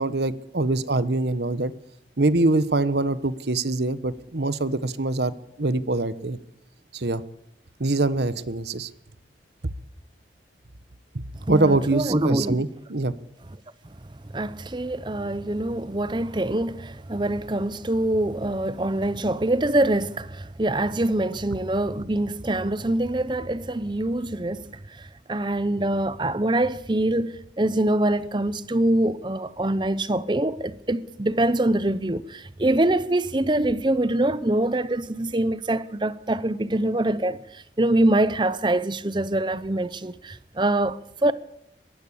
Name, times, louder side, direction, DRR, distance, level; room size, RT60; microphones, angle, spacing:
voice 1, 0.0-1.7 2.2-6.4 6.9-7.2 7.8-8.9 11.1-13.1, right 2 dB, 70° right, 1.1 m, -24 dB
voice 2, 11.5-12.6 14.3-41.3, right 1 dB, 25° right, 0.7 m, -24 dB
22.0 x 15.5 x 8.7 m
head